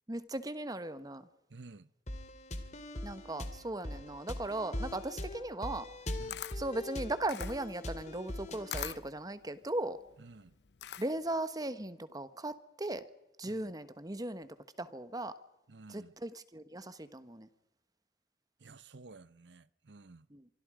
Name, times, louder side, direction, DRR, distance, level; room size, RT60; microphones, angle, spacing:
voice 1, 0.1-1.3 3.0-5.9 6.5-10.0 11.0-13.0 13.4-15.4 15.9-17.5 20.3-20.5, right 1 dB, 20° right, 1.3 m, -38 dB
voice 2, 1.5-1.9 6.2-6.4 10.2-10.5 13.4-13.7 15.7-16.1 18.6-20.3, right 3 dB, 85° right, 0.8 m, -53 dB
sound 1, 2.1-9.0, left 1 dB, 40° left, 2.3 m, -41 dB
Camera, 5.9-11.4, left 10 dB, 70° left, 0.7 m, -45 dB
25.0 x 24.5 x 5.0 m
head